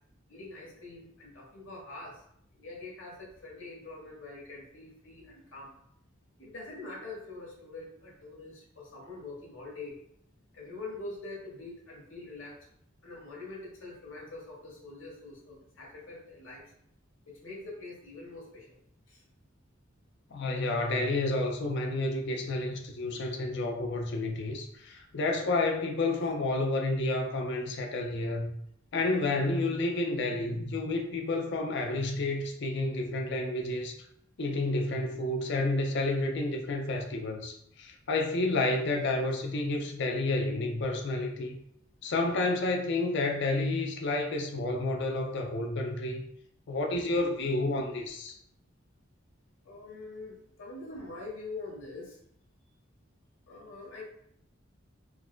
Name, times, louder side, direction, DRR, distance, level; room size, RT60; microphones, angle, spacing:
voice 1, 0.3-2.2 2.5-5.7 6.4-10.0 10.5-12.6 13.0-16.6 17.2-18.8 19.1-19.2 49.6-52.2 53.5-54.1, left 2 dB, 75° left, 1.2 m, -44 dB
voice 2, 20.3-28.5 28.9-34.0 34.4-41.6 42.0-46.2 46.7-48.4, left 2 dB, 60° left, 0.5 m, -30 dB
4.6 x 2.1 x 2.3 m
head